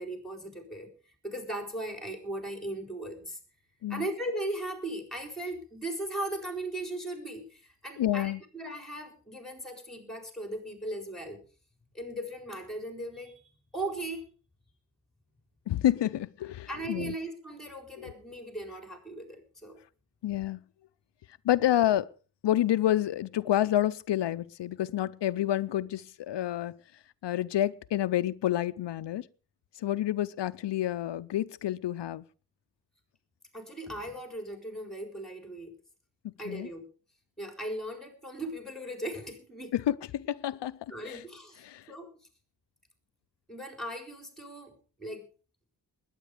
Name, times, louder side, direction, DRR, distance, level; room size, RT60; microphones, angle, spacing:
voice 1, 0.0-3.4 3.9-11.4 11.9-13.4 13.7-14.3 16.7-19.8 33.5-35.7 36.4-36.9 37.4-39.7 40.9-42.1 43.5-44.7 45.0-45.3, right 1 dB, ahead, 4.2 m, -38 dB
voice 2, 8.0-8.4 15.7-17.1 18.0-18.1 20.2-20.6 21.4-22.1 22.4-26.7 27.2-29.2 29.8-32.2 36.5-36.7 39.7-41.2 41.6-41.9, left 12 dB, 85° left, 0.6 m, -29 dB
20.5 x 9.1 x 5.0 m
wide cardioid pair, 130°, 41 cm